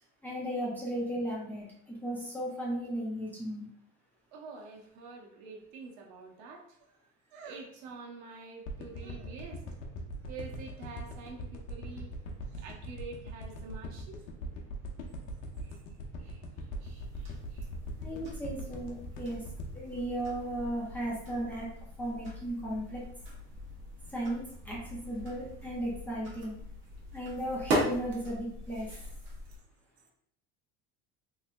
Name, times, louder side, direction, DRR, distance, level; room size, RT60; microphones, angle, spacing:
voice 1, 0.2-3.7 18.0-19.4 19.7-21.7 22.0-23.1 24.1-26.6 27.1-28.9, right 1 dB, 5° left, -6 dB, 0.6 m, -36 dB
voice 2, 4.3-9.6 10.3-12.1 12.5-14.2 15.6-15.8 16.2-16.4 16.8-17.7, right 4 dB, 65° right, 1 dB, 0.8 m, -47 dB
sound 1, 8.7-21.0 21.4-21.5, equal, 65° left, 0.8 m, -41 dB
sound 2, 16.9-29.6, right 1 dB, 40° right, 1.0 m, -39 dB
3.5 x 3.2 x 2.5 m, 0.69 s
cardioid pair, 165°, 31 cm